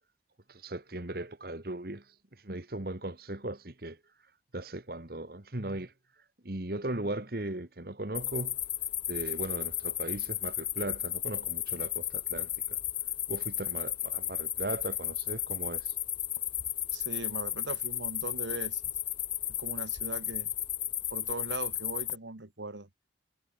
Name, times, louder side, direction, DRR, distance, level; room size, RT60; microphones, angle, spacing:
voice 1, 0.5-2.0 2.4-4.0 4.5-5.9 6.4-8.6 9.1-12.8 13.3-15.9, right 1 dB, 55° right, 1.7 m, -38 dB
sound 1, 8.1-22.2, left 12 dB, 30° left, 0.5 m, -34 dB
voice 2, 16.9-18.8 19.6-20.5 21.1-22.9, right 2 dB, 85° right, 2.0 m, -39 dB
head